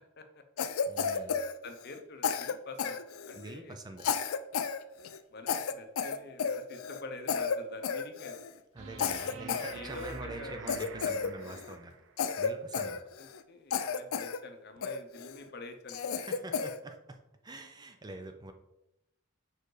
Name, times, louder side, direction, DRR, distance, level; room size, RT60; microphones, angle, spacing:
voice 1, 0.2-0.6 1.1-1.4 1.6-3.0 3.2-3.8 4.9-8.4 9.7-10.7 13.2-16.2, left 2 dB, 50° left, 7 dB, 0.7 m, -47 dB
Cough, 0.6-3.5 4.0-4.8 5.0-5.2 5.5-7.0 7.3-7.6 7.8-8.5 9.0-10.2 10.7-11.7 12.2-13.4 13.7-14.4 14.8-15.4 15.9-16.8, left 6 dB, 85° left, 0.4 m, -32 dB
voice 2, 0.9-1.4 3.4-4.1 8.7-11.9 12.4-13.0 16.2-17.2 17.4-18.5, right 2 dB, 20° right, 6 dB, 0.5 m, -45 dB
sound 1, 8.8-12.1 14.8-14.9, right 5 dB, 65° right, 0.6 m, -46 dB
5.1 x 4.6 x 4.8 m, 0.86 s
head